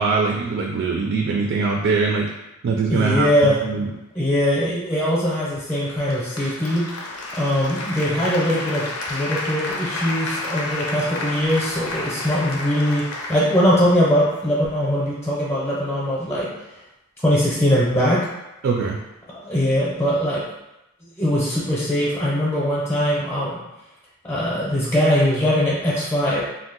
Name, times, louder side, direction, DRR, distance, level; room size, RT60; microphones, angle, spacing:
voice 1, 0.0-2.3 2.6-3.3 3.6-3.9 18.6-19.0, right 4 dB, 60° right, 0 dB, 0.3 m, -22 dB
voice 2, 2.9-3.6 4.1-6.8 7.4-16.5 17.2-18.2 19.3-20.4 21.2-23.6 24.2-26.4, equal, 15° left, -7 dB, 0.6 m, -21 dB
Applause, 5.7-14.7, left 2 dB, 75° left, 0.5 m, -31 dB
2.6 x 2.0 x 3.9 m, 0.94 s
head